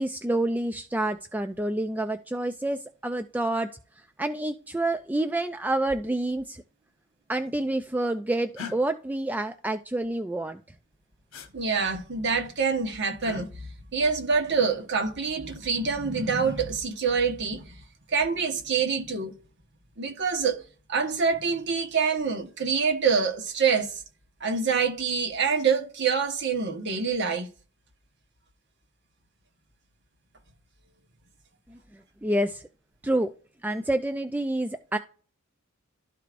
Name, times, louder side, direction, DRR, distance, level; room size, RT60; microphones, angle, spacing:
voice 1, 0.0-3.7 4.2-6.6 7.3-10.6 32.2-32.6 33.0-33.3 33.6-35.0, right 1 dB, 10° right, 0.3 m, -28 dB
sound 1, 8.6-8.8 11.3-11.5 13.2-13.5 15.2-15.7, left 5 dB, 85° left, 1.2 m, -39 dB
voice 2, 11.5-13.7 13.9-17.7 18.1-19.3 20.0-20.6 20.9-23.9 24.4-27.5, right 5 dB, 55° right, 1.2 m, -26 dB
12.5 x 4.6 x 2.5 m
head